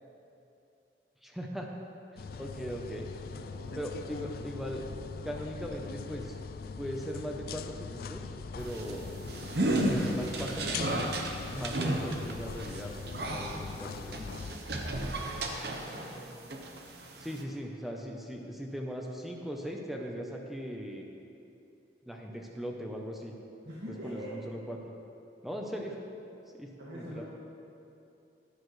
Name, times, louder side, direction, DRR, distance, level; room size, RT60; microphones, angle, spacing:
voice 1, 1.2-1.7 2.1-3.1 3.8-4.8 5.2-6.4 6.8-9.2 9.8-11.1 11.5-14.4 17.2-21.1 22.1-23.3 24.0-24.8 25.4-26.0 26.6-27.2, equal, ahead, 0 dB, 0.7 m, -39 dB
sound 1, 2.2-14.6, left 5 dB, 55° left, 0.3 m, -41 dB
voice 2, 3.3-4.4 14.7-16.4 23.6-24.4 26.8-27.2, equal, 80° right, -9 dB, 1.9 m, -45 dB
sound 2, 8.6-16.2 16.5-17.4, right 1 dB, 65° right, 0.9 m, -33 dB
11.5 x 11.0 x 3.2 m, 2.7 s
head